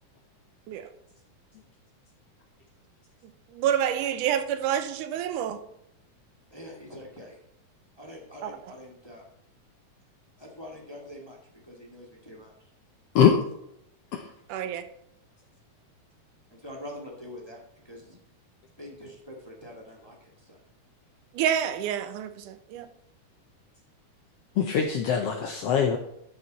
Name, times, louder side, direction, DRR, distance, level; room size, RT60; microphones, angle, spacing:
voice 1, 3.2-5.6 8.4-8.5 14.5-14.9 21.3-22.9, right 9 dB, 85° right, 10 dB, 2.3 m, -28 dB
voice 2, 6.5-7.4 8.0-9.2 10.4-11.4 11.6-12.5 16.5-17.6 17.8-18.2 18.8-20.6, left 1 dB, 10° left, -1 dB, 1.3 m, -44 dB
voice 3, 24.6-26.0, left 7 dB, 75° left, 4 dB, 1.4 m, -22 dB
12.5 x 6.7 x 4.1 m, 0.77 s
omnidirectional pair, 3.6 m